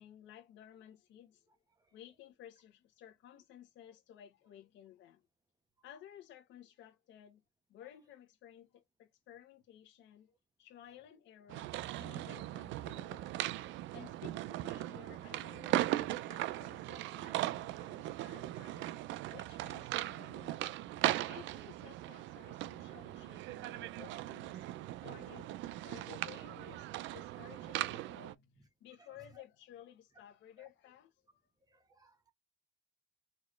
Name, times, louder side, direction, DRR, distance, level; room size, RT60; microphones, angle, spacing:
voice 1, 0.0-1.5 1.9-5.2 5.8-7.4 7.7-10.3 10.6-11.7 12.0-13.3 13.9-18.9 19.3-20.7 21.2-24.7 25.0-25.5 25.8-31.5, left 11 dB, 75° left, 1.0 m, -56 dB
sound 1, 11.5-28.3, right 15 dB, 80° right, 0.5 m, -39 dB
voice 2, 31.7-32.3, right 1 dB, 20° right, 1.3 m, -64 dB
4.4 x 3.1 x 3.1 m
cardioid pair, 125°, 19 cm